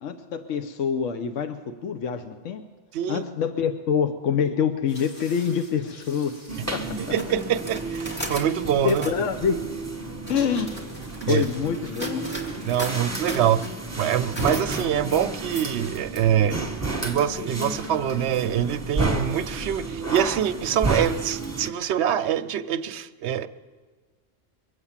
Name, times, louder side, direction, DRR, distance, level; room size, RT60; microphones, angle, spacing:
voice 1, 0.0-2.6 3.1-6.3 6.7-6.8 8.8-9.6 10.3-10.7 11.3-12.2, left 7 dB, 80° left, 8 dB, 1.1 m, -26 dB
voice 2, 2.9-3.2 7.0-9.1 11.2-11.4 12.7-13.7 14.0-16.7 17.0-23.5, right 10 dB, 65° right, 10 dB, 0.8 m, -25 dB
sound 1, 4.8-15.8, left 1 dB, 60° left, 2.8 m, -49 dB
sound 2, 6.5-21.7, right 3 dB, 15° right, 1.2 m, -31 dB
sound 3, 7.2-9.2 10.0-16.2, right 1 dB, 10° left, 2.0 m, -37 dB
23.0 x 8.2 x 7.3 m, 1.4 s
omnidirectional pair, 1.3 m